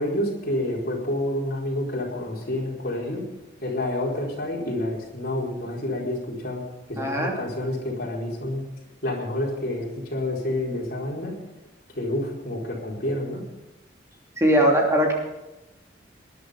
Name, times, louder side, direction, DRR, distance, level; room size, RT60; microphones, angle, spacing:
voice 1, 0.0-3.2 3.6-6.6 6.9-8.6 9.0-11.3 11.9-13.4, left 1 dB, 55° left, -3 dB, 4.6 m, -28 dB
voice 2, 7.0-7.3 14.4-15.1, equal, 15° right, -1 dB, 3.0 m, -20 dB
20.5 x 11.0 x 5.2 m, 1.0 s
head